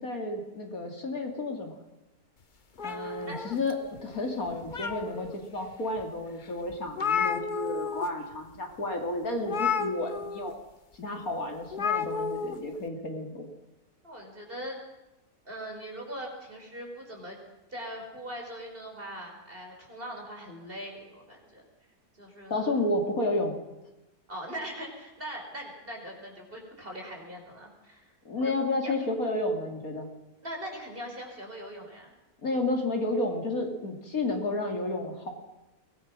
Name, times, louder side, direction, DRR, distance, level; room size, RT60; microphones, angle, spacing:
voice 1, 0.0-1.7 2.8-10.6 11.0-13.4 22.5-23.6 28.2-30.1 32.4-35.3, left 2 dB, 60° left, 3 dB, 3.1 m, -31 dB
sound 1, 2.8-4.0 4.5-5.4 6.0-6.1 6.4-6.5 6.7-8.1 8.3-8.6 9.4-10.5 11.7-12.5, left 6 dB, 35° left, 0.9 m, -31 dB
voice 2, 2.8-3.4 14.0-14.7 15.4-17.4 17.7-21.6 22.2-22.7 24.3-28.6 28.8-28.9 30.4-32.1, equal, 35° right, 1 dB, 4.8 m, -41 dB
23.0 x 19.0 x 6.2 m, 0.98 s
omnidirectional pair, 1.7 m